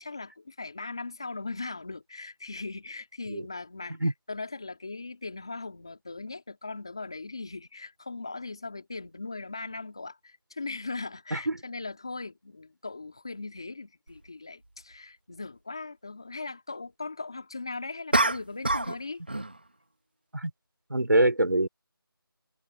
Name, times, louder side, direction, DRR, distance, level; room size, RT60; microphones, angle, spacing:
voice 1, 0.0-19.2, left 3 dB, 10° left, 2.6 m, -39 dB
sound 1, 14.1-14.2 18.1-19.0 19.3-19.6, right 2 dB, 25° right, 1.6 m, -26 dB
voice 2, 20.9-21.7, right 1 dB, 55° right, 4.1 m, -23 dB
figure-of-eight pair, 180°, 12 cm